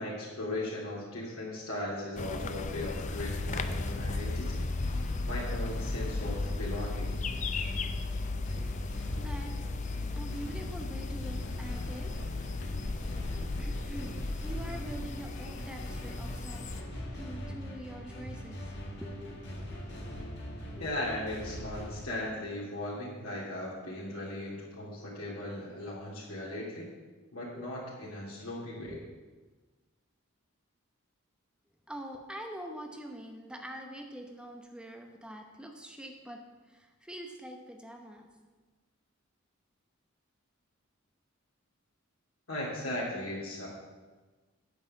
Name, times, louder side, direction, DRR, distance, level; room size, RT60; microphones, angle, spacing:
voice 1, 0.0-4.7 5.2-7.2 20.8-26.9 27.3-28.9 42.5-43.7, left 1 dB, 85° left, -7 dB, 2.6 m, -37 dB
sound 1, 2.2-16.8, left 3 dB, 35° left, 0.5 m, -35 dB
sound 2, 3.2-22.0, equal, 55° left, 1.9 m, -41 dB
voice 2, 9.2-9.5 9.9-12.4 13.6-16.7 17.1-19.5 19.8-19.9 20.7-20.9 27.5-27.7 28.9-29.0 31.9-38.3, right 1 dB, 5° right, 3 dB, 0.8 m, -45 dB
9.2 x 5.5 x 7.5 m, 1.3 s
head